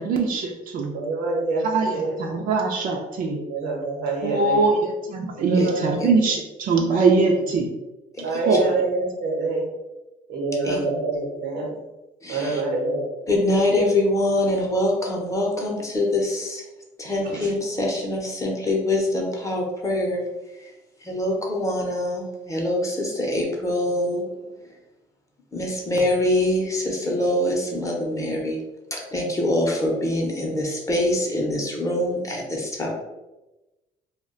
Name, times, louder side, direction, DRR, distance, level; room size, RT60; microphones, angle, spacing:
voice 1, 0.0-0.9 1.6-3.4 4.2-7.7 8.3-8.7, right 3 dB, 55° right, 1 dB, 0.5 m, -22 dB
voice 2, 0.9-1.7 1.9-2.2 3.3-4.7 5.3-6.1 8.2-9.7 10.3-11.8 12.3-13.0 13.7-13.8 17.2-17.5, right 3 dB, 90° right, -1 dB, 0.9 m, -26 dB
voice 3, 8.1-8.6 10.6-10.9 12.2-12.6 13.3-16.6 17.0-20.3 20.6-20.7 21.0-24.4 25.5-28.6 28.9-32.9, left 1 dB, 20° left, -1 dB, 0.7 m, -24 dB
2.3 x 2.2 x 3.6 m, 1.0 s
cardioid pair, 110°, 17 cm